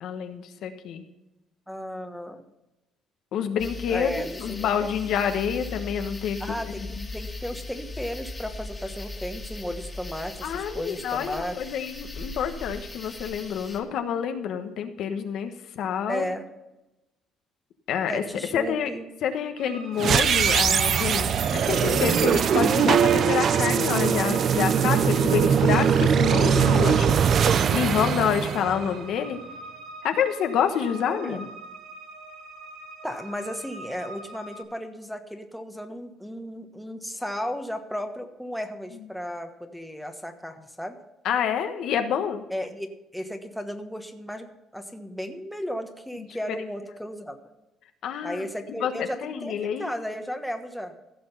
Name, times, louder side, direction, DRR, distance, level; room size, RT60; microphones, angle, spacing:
voice 1, 0.0-1.0 3.3-4.1 4.4-6.4 10.4-16.3 17.9-18.2 18.5-18.9 19.2-27.2 27.4-29.4 30.0-31.5 41.2-42.5 46.5-46.6 48.0-48.4 48.8-49.9, left 8 dB, 70° left, 7 dB, 1.2 m, -28 dB
voice 2, 1.7-2.4 3.9-4.9 6.4-11.6 16.1-16.5 18.1-19.0 31.0-31.4 33.0-41.0 42.5-42.9 43.1-47.4 48.2-50.9, equal, ahead, 5 dB, 1.2 m, -34 dB
sound 1, 3.6-13.8, left 2 dB, 15° left, 2.0 m, -39 dB
sound 2, 19.6-34.6, right 1 dB, 85° right, 2.6 m, -43 dB
sound 3, 20.0-29.2, right 7 dB, 50° right, 0.6 m, -21 dB
15.5 x 6.2 x 5.6 m, 0.96 s
cardioid pair, 125°, 0 cm